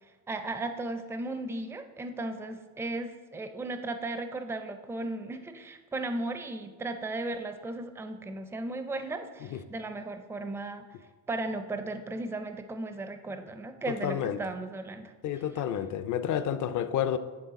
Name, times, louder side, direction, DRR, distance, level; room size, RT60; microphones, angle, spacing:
voice 1, 0.3-10.8 11.3-15.6, right 2 dB, 5° right, 8 dB, 0.4 m, -36 dB
voice 2, 13.9-14.4 15.2-17.2, left 10 dB, 45° left, 12 dB, 0.5 m, -30 dB
9.7 x 3.5 x 4.0 m, 1.3 s
supercardioid pair, 85°, 47 cm